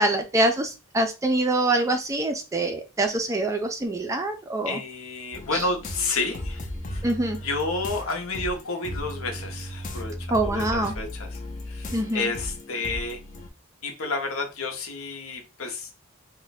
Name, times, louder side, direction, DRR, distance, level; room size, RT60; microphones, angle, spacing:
voice 1, 0.0-4.8 5.5-5.6 7.0-7.4 10.3-10.9 11.9-12.3, right 2 dB, 15° right, 5 dB, 0.4 m, -25 dB
voice 2, 4.6-7.1 7.4-11.4 11.7-13.2 13.8-15.9, left 3 dB, 70° left, 4 dB, 0.8 m, -30 dB
sound 1, 5.3-13.5, left 1 dB, 35° left, 0.5 m, -36 dB
2.5 x 2.2 x 4.0 m, 0.29 s
head